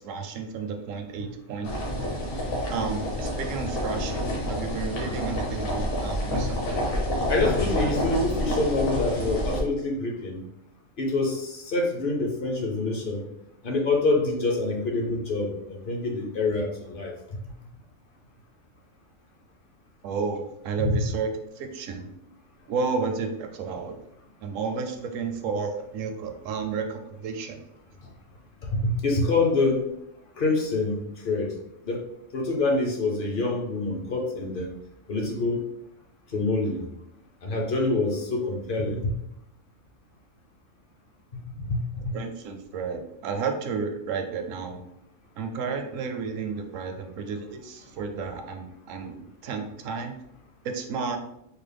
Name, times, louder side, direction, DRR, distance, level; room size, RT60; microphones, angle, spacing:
voice 1, 0.0-2.2 2.7-6.8 20.0-21.3 21.6-22.1 22.7-24.0 24.4-27.6 42.1-44.8 45.4-50.2 50.6-51.2, right 5 dB, 70° right, 5 dB, 0.9 m, -32 dB
sound 1, 1.6-9.6, equal, 65° left, 1.4 m, -28 dB
voice 2, 7.3-10.4 11.0-13.2 13.6-17.1 20.8-21.0 28.6-29.9 30.4-31.5 31.8-32.0 32.3-34.7 35.1-35.6 36.3-36.8 37.4-39.1 41.3-42.2, left 2 dB, 50° left, 0 dB, 0.7 m, -26 dB
4.6 x 2.1 x 3.3 m, 0.79 s
omnidirectional pair, 1.5 m